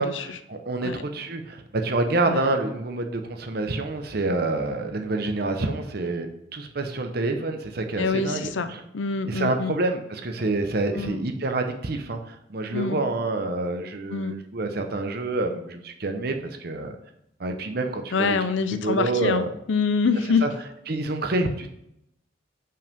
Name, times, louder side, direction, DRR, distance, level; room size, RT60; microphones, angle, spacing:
voice 1, 0.0-8.8 9.3-17.0 17.4-18.4 18.7-19.5 20.4-20.5 20.9-21.7, right 2 dB, 55° right, 6 dB, 0.8 m, -27 dB
voice 2, 8.0-9.8 10.9-11.2 12.7-13.0 14.1-14.3 18.1-20.4, left 4 dB, 80° left, 11 dB, 0.6 m, -25 dB
5.6 x 5.3 x 5.3 m, 0.79 s
head